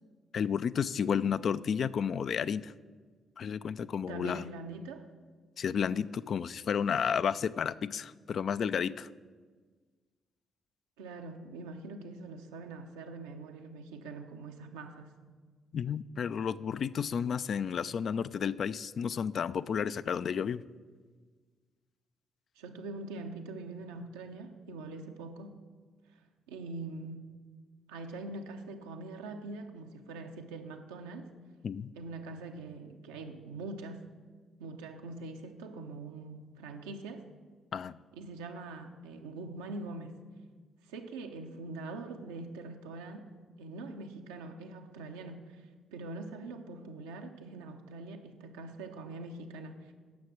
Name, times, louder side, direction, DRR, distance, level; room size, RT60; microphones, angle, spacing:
voice 1, 0.3-2.7 3.4-4.4 5.6-9.1 15.7-20.6 31.6-31.9 37.7-38.0, left 7 dB, 55° left, 15 dB, 0.3 m, -32 dB
voice 2, 4.1-5.0 11.0-15.1 22.6-25.6 26.5-27.2 27.9-31.3 31.9-34.0 34.6-37.3 38.2-40.1 40.9-43.3 43.6-45.6 45.9-49.9, right 3 dB, 85° right, 4 dB, 0.8 m, -43 dB
9.4 x 6.6 x 6.3 m, 1.5 s
hypercardioid pair, 45°, 0 cm